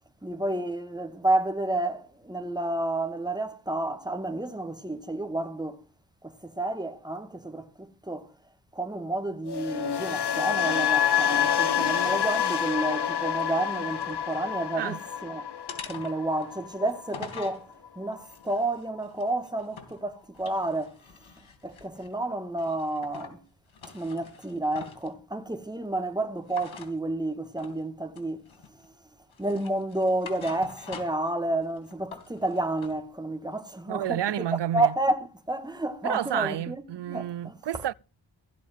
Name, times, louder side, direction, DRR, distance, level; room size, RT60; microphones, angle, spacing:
voice 1, 0.2-5.8 6.2-7.7 8.1-8.3 8.8-15.0 15.2-15.4 15.9-17.7 18.0-21.0 21.6-23.4 23.9-28.4 29.4-34.2 34.7-37.5, right 2 dB, 10° right, 2.2 m, -30 dB
sound 1, 9.5-17.6 17.8-18.2, left 9 dB, 55° left, 1.2 m, -28 dB
sound 2, 13.3-14.5 14.9-15.3 15.7-17.6 18.2-20.0 20.3-22.2 22.6-23.4 23.7-25.1 26.5-26.9 27.6-27.8 28.2-28.9 29.3-31.3 31.6-33.0, left 5 dB, 70° left, 3.0 m, -45 dB
voice 2, 33.9-34.9 36.0-37.9, right 11 dB, 60° right, 0.6 m, -30 dB
15.5 x 5.3 x 9.2 m
cardioid pair, 60°, 48 cm